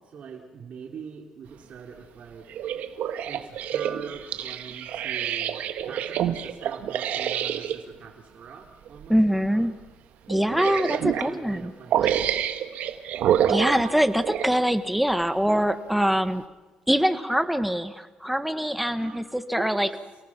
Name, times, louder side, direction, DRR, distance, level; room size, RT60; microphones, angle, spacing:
voice 1, 0.0-2.5 3.3-9.8 10.5-12.2 19.0-19.3 19.5-19.9, right 6 dB, 55° right, 0 dB, 3.0 m, -43 dB
sound 1, 2.5-7.8 8.9-9.1 9.4-9.5 10.3-11.3 11.9-14.6 15.2-15.3, right 10 dB, 75° right, 1.5 m, -27 dB
voice 2, 9.1-9.7 10.3-11.7 13.5-16.4 16.9-19.9, equal, 5° right, 10 dB, 1.4 m, -23 dB
29.0 x 18.5 x 6.0 m, 1.2 s
cardioid pair, 95°, 3 cm